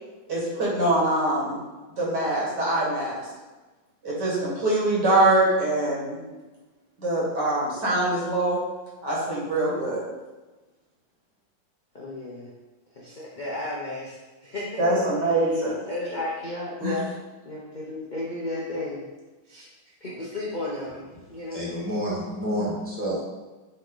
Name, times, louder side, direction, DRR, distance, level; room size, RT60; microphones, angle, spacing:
voice 1, 0.3-1.6 2.0-3.2 4.0-6.2 7.0-8.6 9.0-10.0 14.8-15.8 16.8-16.9, right 1 dB, 60° right, -5 dB, 2.5 m, -23 dB
voice 2, 11.9-12.5 12.9-14.2 14.4-15.3 15.9-17.1 17.4-19.1 19.5-19.6 20.0-21.9, left 2 dB, 40° left, -5 dB, 0.7 m, -33 dB
voice 3, 21.5-23.3, equal, 5° left, -7 dB, 1.4 m, -29 dB
7.9 x 3.7 x 3.9 m, 1.2 s
omnidirectional pair, 2.1 m